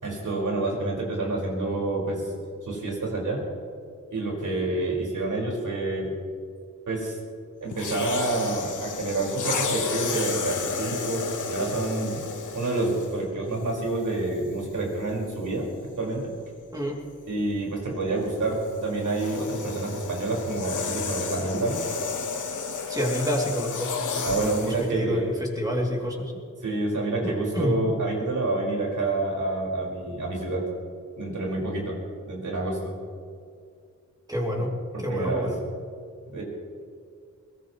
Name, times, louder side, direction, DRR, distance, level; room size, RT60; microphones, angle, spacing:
voice 1, 0.0-2.3 2.6-3.5 4.1-6.1 6.9-7.2 7.6-12.3 12.5-15.7 16.0-16.3 17.3-21.8 24.2-25.3 26.6-30.6 31.2-32.9 34.5-34.6 34.9-35.5 36.3-36.4, right 2 dB, 80° right, -2 dB, 5.1 m, -28 dB
sound 1, 7.7-13.2 14.1-14.3 18.2-24.9, left 5 dB, 85° left, 1.3 m, -32 dB
voice 2, 16.7-17.0 22.9-26.3 27.2-27.8 34.3-34.7 35.0-35.6, equal, 10° right, -2 dB, 2.8 m, -28 dB
22.5 x 17.5 x 3.2 m, 2.2 s
wide cardioid pair, 85°, 30 cm